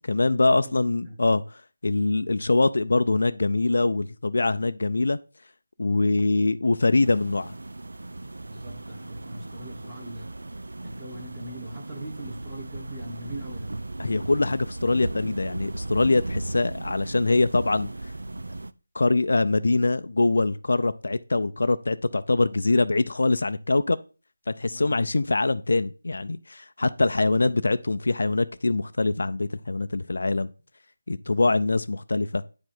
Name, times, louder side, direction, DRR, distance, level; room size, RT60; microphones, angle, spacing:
voice 1, 0.0-5.2 5.8-7.5 14.0-18.1 18.9-24.0 24.5-30.5 31.1-32.4, left 3 dB, 55° left, 0.4 m, -23 dB
sound 1, 7.0-18.7, right 2 dB, 70° right, 0.5 m, -36 dB
voice 2, 8.4-10.3 10.8-13.8 22.7-22.8 24.7-25.0 31.2-31.5, right 1 dB, 10° right, 1.2 m, -41 dB
9.2 x 4.9 x 3.8 m
figure-of-eight pair, 180°, 0 cm